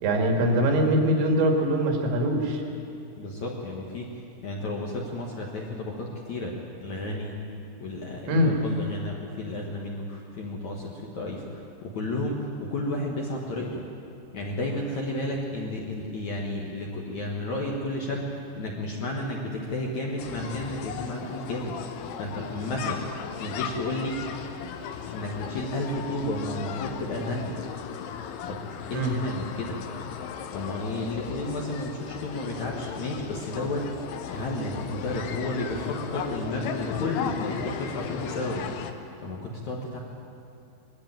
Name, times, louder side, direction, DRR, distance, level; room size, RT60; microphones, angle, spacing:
voice 1, 0.0-2.6 8.3-8.5 28.9-29.1, equal, 75° right, 2 dB, 4.3 m, -23 dB
voice 2, 3.2-4.1 4.4-6.6 6.8-7.4 7.8-13.8 14.3-21.7 22.2-23.0 23.4-24.1 25.1-27.5 28.5-28.6 28.9-29.8 30.5-38.6 39.2-40.0, left 1 dB, 55° left, -1 dB, 2.1 m, -32 dB
sound 1, 20.2-38.9, left 8 dB, 75° left, 2.6 m, -36 dB
21.5 x 14.0 x 9.1 m, 2.8 s
omnidirectional pair, 5.3 m